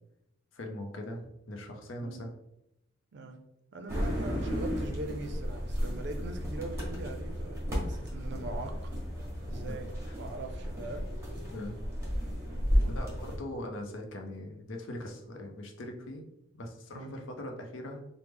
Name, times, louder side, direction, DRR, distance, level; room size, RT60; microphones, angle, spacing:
voice 1, 0.5-2.3 9.7-9.8 11.5-11.8 12.8-16.2 16.5-18.0, left 1 dB, 75° left, 3 dB, 0.5 m, -41 dB
voice 2, 3.7-8.9 9.5-11.1 12.5-13.4 16.9-17.2, right 2 dB, 60° right, 6 dB, 0.4 m, -42 dB
sound 1, 3.9-13.4, equal, 15° right, 0.9 m, -33 dB
3.2 x 2.0 x 3.3 m, 0.84 s
head